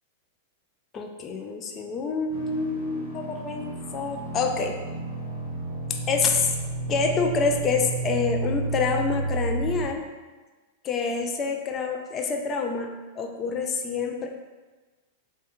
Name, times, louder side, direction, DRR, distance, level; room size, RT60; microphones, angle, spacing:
voice 1, 0.9-4.7 6.1-6.5 6.9-10.0 10.8-12.9 13.2-14.3, left 4 dB, 30° left, 3 dB, 0.3 m, -27 dB
sound 1, 2.3-9.9, right 2 dB, 75° left, 1.0 m, -31 dB
3.1 x 2.2 x 3.0 m, 1.3 s
hypercardioid pair, 115°, 0 cm